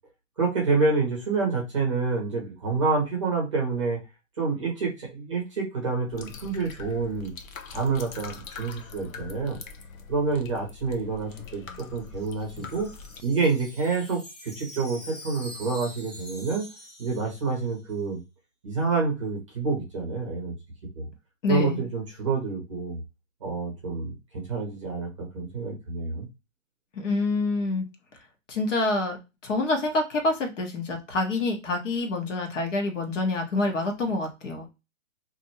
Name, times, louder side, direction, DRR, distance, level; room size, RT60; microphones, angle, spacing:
voice 1, 0.4-4.0 4.4-7.3 7.7-9.6 10.1-12.9 13.2-16.6 17.0-18.2 18.6-20.5 21.0-21.1 21.5-23.0 23.4-26.3, right 4 dB, 25° right, -1 dB, 0.7 m, -28 dB
sound 1, 6.1-13.2, left 6 dB, 85° left, 0.7 m, -43 dB
Wind chime, 11.9-17.9, equal, 30° left, 0.6 m, -45 dB
voice 2, 21.4-21.8 26.9-27.8 28.5-29.2 29.4-34.7, left 2 dB, 65° left, 3 dB, 1.1 m, -27 dB
2.6 x 2.1 x 4.0 m, 0.26 s
hypercardioid pair, 175°, 40 cm